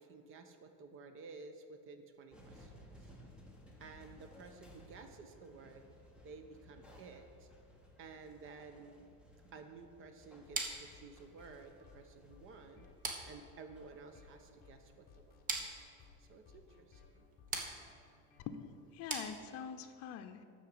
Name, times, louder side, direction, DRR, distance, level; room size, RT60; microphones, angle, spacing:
voice 1, 0.0-2.9 3.8-5.9 6.2-7.5 8.0-9.1 9.5-12.9 13.2-15.1 15.8-15.9 16.2-17.2, right 4 dB, 45° right, 7 dB, 1.1 m, -53 dB
sound 1, 2.3-15.0, equal, 5° right, 1.5 m, -60 dB
sound 2, 10.5-18.8, left 5 dB, 30° left, 1.4 m, -62 dB
sound 3, 10.5-19.9, right 3 dB, 25° right, 1.4 m, -45 dB
voice 2, 18.9-20.4, left 7 dB, 55° left, 6 dB, 0.8 m, -44 dB
13.0 x 4.7 x 8.5 m, 2.4 s
cardioid pair, 150°, 31 cm